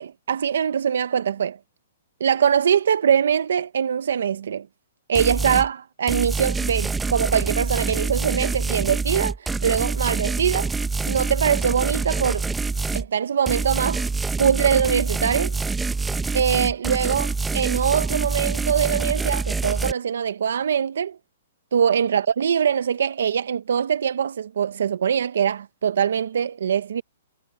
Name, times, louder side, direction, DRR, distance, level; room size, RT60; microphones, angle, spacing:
voice 1, 0.0-1.6 2.2-4.7 5.1-10.7 11.1-12.5 12.9-14.1 14.4-15.6 16.3-21.2 21.7-27.0, right 8 dB, 80° right, 0.7 m, -22 dB
sound 1, 5.1-5.7 6.1-13.1 13.5-19.9, right 4 dB, 5° right, 0.8 m, -26 dB
hypercardioid pair, 160°, 0 cm